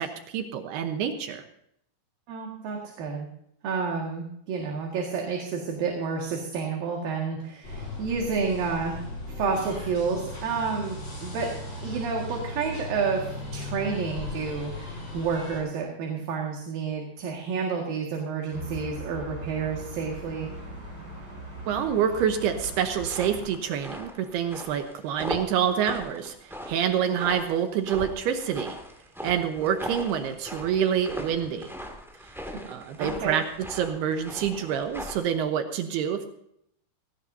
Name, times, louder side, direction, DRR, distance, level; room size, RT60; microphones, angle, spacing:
voice 1, 0.0-1.4 21.7-28.8 29.2-31.7 32.7-33.4 33.7-36.3, right 8 dB, 75° right, 6 dB, 2.9 m, -27 dB
voice 2, 2.3-3.3 3.6-9.0 9.3-11.5 11.8-20.5 33.0-33.4, right 5 dB, 60° right, 0 dB, 3.5 m, -30 dB
sound 1, 7.6-15.6, left 2 dB, 35° left, 7.4 m, -37 dB
sound 2, 18.5-23.5, right 1 dB, 25° right, 7.3 m, -40 dB
sound 3, 22.9-35.4, equal, 5° right, 0.5 m, -39 dB
17.0 x 17.0 x 2.7 m, 0.74 s
omnidirectional pair, 4.8 m